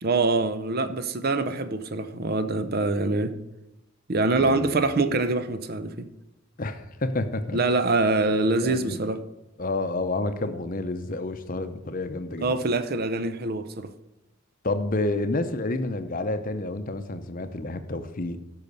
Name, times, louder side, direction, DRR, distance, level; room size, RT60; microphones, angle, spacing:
voice 1, 0.0-3.4 4.1-6.1 7.5-9.2 12.4-13.9, right 3 dB, 45° right, 11 dB, 0.7 m, -24 dB
voice 2, 4.4-4.8 6.6-7.6 8.1-8.3 8.6-9.1 9.6-12.6 14.6-18.4, left 2 dB, 40° left, 9 dB, 0.7 m, -29 dB
13.5 x 5.7 x 5.4 m, 0.96 s
head